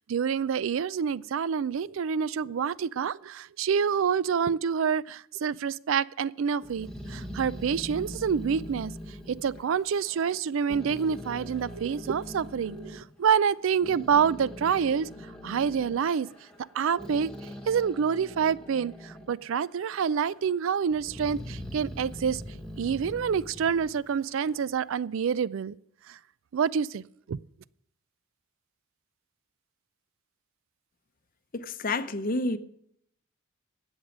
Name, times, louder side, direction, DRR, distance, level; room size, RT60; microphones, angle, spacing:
voice 1, 0.0-8.9 9.3-15.1 15.4-16.3 16.7-22.4 22.8-25.7 26.1-26.2 26.5-27.0 27.3-27.4, right 7 dB, 65° right, 0.4 m, -27 dB
Growling, 6.6-10.4 10.7-13.0 13.6-19.4 19.8-20.5 20.9-24.7, equal, 5° left, 1.3 m, -42 dB
voice 2, 31.5-32.6, left 2 dB, 40° left, 0.7 m, -29 dB
13.0 x 8.1 x 6.1 m
head